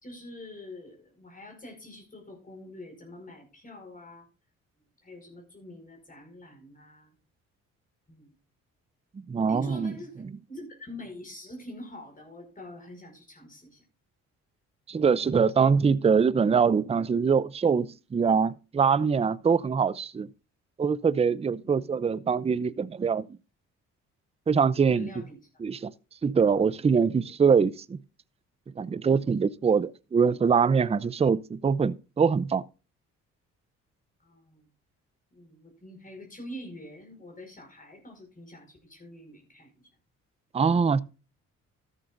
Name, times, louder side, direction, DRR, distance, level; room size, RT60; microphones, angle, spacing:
voice 1, 0.0-4.3 5.0-7.1 8.1-8.3 9.5-13.8 21.4-21.7 24.8-25.4 34.2-34.6 35.3-39.7, left 1 dB, 25° left, 5.3 m, -45 dB
voice 2, 9.3-9.9 14.9-20.3 20.8-23.3 24.5-25.2 25.6-25.9 26.2-28.0 28.8-32.6 40.5-41.0, right 6 dB, 20° right, 0.5 m, -23 dB
13.5 x 11.5 x 2.6 m
cardioid pair, 90°, 30 cm